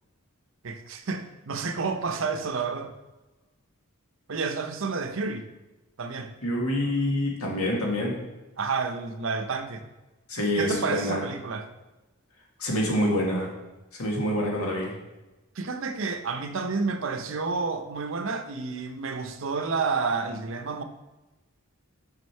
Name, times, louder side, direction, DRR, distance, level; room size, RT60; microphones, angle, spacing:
voice 1, 0.6-2.9 4.3-5.5 6.0-6.3 8.6-9.8 10.6-11.7 15.6-20.8, right 4 dB, 60° right, 0.6 m, -30 dB
voice 2, 6.4-8.2 10.3-11.2 12.6-13.5 13.9-14.9, left 1 dB, 90° left, 1.6 m, -26 dB
6.2 x 5.0 x 4.5 m
head